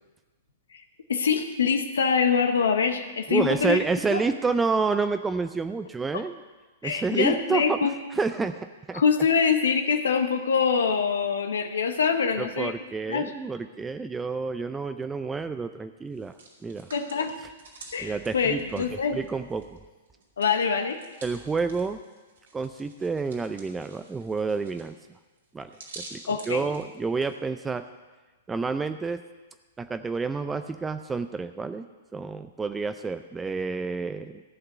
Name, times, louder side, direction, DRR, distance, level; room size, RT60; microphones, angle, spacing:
voice 1, 0.7-3.8 4.1-4.2 6.1-6.2 6.8-8.0 8.9-12.7 13.1-13.4 16.9-17.4 17.9-19.2 20.4-21.0 26.3-26.7, left 6 dB, 75° left, 6 dB, 0.9 m, -25 dB
voice 2, 3.3-6.3 6.8-7.8 8.2-9.0 12.4-16.4 16.6-16.9 18.0-18.8 19.1-19.8 21.2-22.0 22.5-24.9 25.5-25.7 26.0-26.2 26.5-27.8 28.5-29.2 29.8-31.8 32.1-34.4, right 4 dB, 15° right, 9 dB, 0.5 m, -29 dB
Hands, 16.1-19.8 20.1-27.3, right 3 dB, 75° right, 2.6 m, -49 dB
14.5 x 5.8 x 7.9 m, 1.2 s
hypercardioid pair, 110°, 0 cm